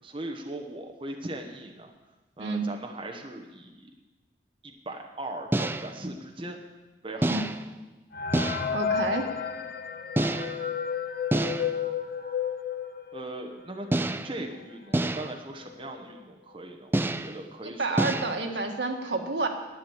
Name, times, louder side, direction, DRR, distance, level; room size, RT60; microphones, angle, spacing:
voice 1, 0.0-1.9 2.4-3.9 4.6-6.6 7.0-7.5 13.1-18.5, right 1 dB, 30° right, 2 dB, 1.0 m, -39 dB
voice 2, 2.4-2.7 7.3-7.4 8.7-9.2 17.6-19.5, right 3 dB, 80° right, 3 dB, 1.6 m, -29 dB
sound 1, 5.5-6.0 7.2-7.7 8.3-8.8 10.2-10.7 11.3-11.9 13.9-14.4 14.9-15.4 16.9-17.4 18.0-18.4, right 1 dB, 10° right, 0.3 m, -28 dB
sound 2, 8.1-13.6 14.0-14.1 14.3-14.5 15.2-15.3 15.7-16.0, left 7 dB, 55° left, 0.7 m, -32 dB
11.0 x 10.0 x 7.2 m, 1.2 s
head